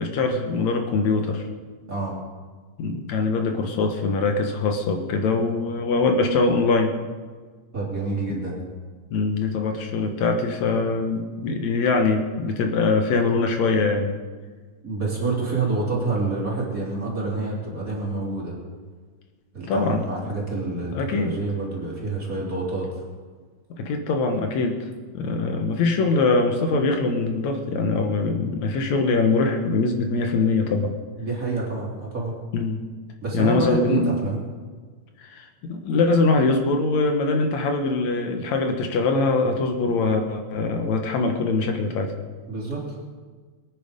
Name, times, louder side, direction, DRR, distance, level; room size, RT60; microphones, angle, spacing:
voice 1, 0.0-1.5 2.8-6.9 9.1-14.2 19.7-20.1 20.9-21.4 23.7-24.8 25.1-30.9 32.5-32.8 33.3-34.1 35.2-42.1, left 3 dB, 75° left, 5 dB, 2.4 m, -23 dB
voice 2, 1.9-2.2 7.7-8.6 14.8-18.6 19.5-23.0 31.2-32.3 33.2-34.4 42.5-43.0, right 3 dB, 30° right, -3 dB, 3.3 m, -27 dB
23.0 x 9.3 x 5.1 m, 1.5 s
omnidirectional pair, 3.3 m